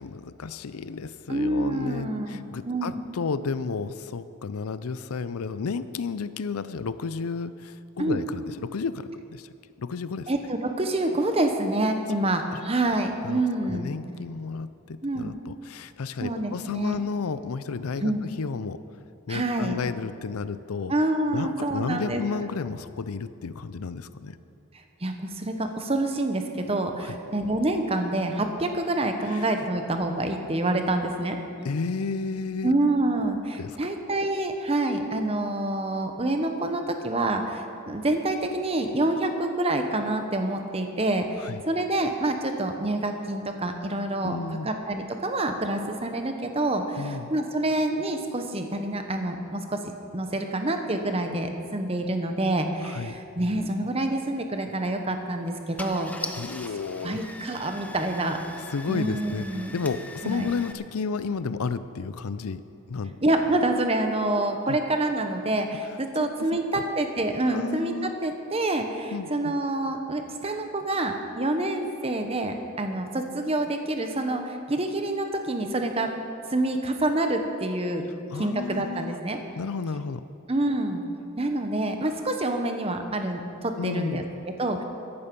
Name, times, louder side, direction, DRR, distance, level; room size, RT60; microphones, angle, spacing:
voice 1, 0.0-9.5 9.8-10.3 12.5-12.6 13.2-13.4 13.7-18.8 19.3-20.9 21.3-24.4 27.0-27.2 29.3-29.4 31.6-32.7 33.5-33.9 41.4-41.6 44.2-44.7 47.0-47.3 52.8-53.1 56.4-57.3 58.7-59.5 59.7-63.2 64.7-64.8 66.2-66.8 67.5-68.1 69.1-69.5 78.3-79.2 79.6-80.2 83.8-84.3, left 4 dB, 85° left, 14 dB, 0.5 m, -32 dB
voice 2, 1.3-3.0 8.0-8.2 10.3-13.9 15.0-15.3 16.2-17.0 18.0-18.3 19.3-19.8 20.9-22.2 25.0-31.4 32.6-44.4 44.6-49.8 50.1-56.1 57.0-58.4 58.9-59.7 60.2-60.5 63.2-76.1 76.5-78.0 78.4-79.4 80.5-81.0 81.4-84.8, right 1 dB, 25° right, 5 dB, 0.9 m, -27 dB
Car / Engine starting, 54.7-54.9 55.5-55.6 55.8-60.7, left 1 dB, 5° left, 0.5 m, -41 dB
14.5 x 11.0 x 5.3 m, 2.6 s
head